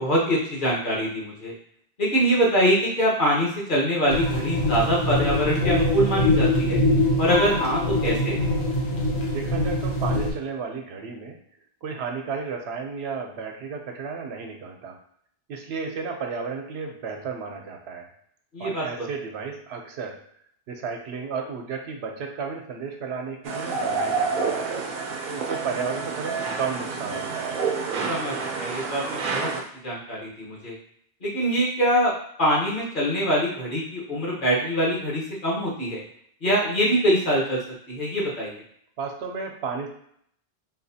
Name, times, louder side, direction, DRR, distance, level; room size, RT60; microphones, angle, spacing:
voice 1, 0.0-1.5 2.0-6.8 7.2-8.4 18.5-18.8 28.1-29.5 29.8-30.7 31.2-32.1 32.4-36.0 36.4-37.6 37.9-38.6, equal, 50° left, -6 dB, 1.3 m, -24 dB
sound 1, 4.1-10.3, left 1 dB, 80° left, 1.2 m, -23 dB
voice 2, 9.3-11.4 11.8-15.0 15.5-18.1 18.6-20.2 20.7-24.7 25.3-27.6 39.0-39.9, right 5 dB, 85° right, 3 dB, 0.9 m, -33 dB
sound 2, 23.4-29.6, right 4 dB, 60° right, 0.7 m, -28 dB
4.0 x 2.4 x 2.7 m, 0.66 s
omnidirectional pair, 1.1 m